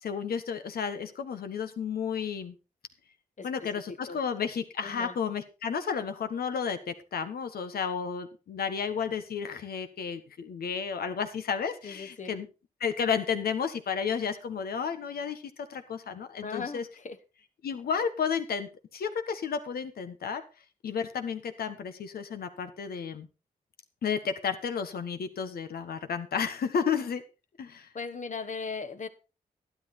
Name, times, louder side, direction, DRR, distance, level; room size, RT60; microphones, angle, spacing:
voice 1, 0.0-2.6 3.4-12.5 12.8-16.9 17.6-20.4 20.8-23.3 24.0-27.2 27.6-27.9, left 6 dB, 90° left, 1.4 m, -32 dB
voice 2, 3.4-4.2 4.8-5.1 11.8-12.3 16.4-17.2 27.9-29.1, left 5 dB, 55° left, 1.4 m, -38 dB
12.0 x 11.0 x 4.2 m
cardioid pair, 65°, 15 cm